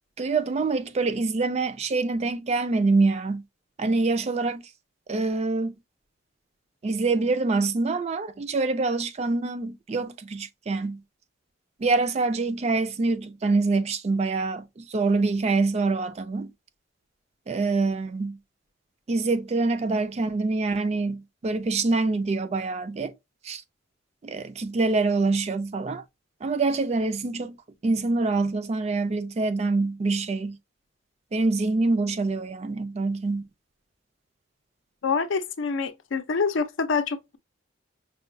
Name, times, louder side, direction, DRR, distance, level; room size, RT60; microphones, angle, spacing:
voice 1, 0.2-3.4 3.8-4.6 5.1-5.8 6.8-11.0 11.8-16.5 17.5-18.4 19.1-23.1 23.4-23.6 24.2-26.0 26.4-27.6 27.8-30.6 31.3-33.4, right 3 dB, 35° right, 0.3 m, -25 dB
voice 2, 35.0-37.4, left 5 dB, 70° left, 0.5 m, -26 dB
5.5 x 2.2 x 2.5 m
head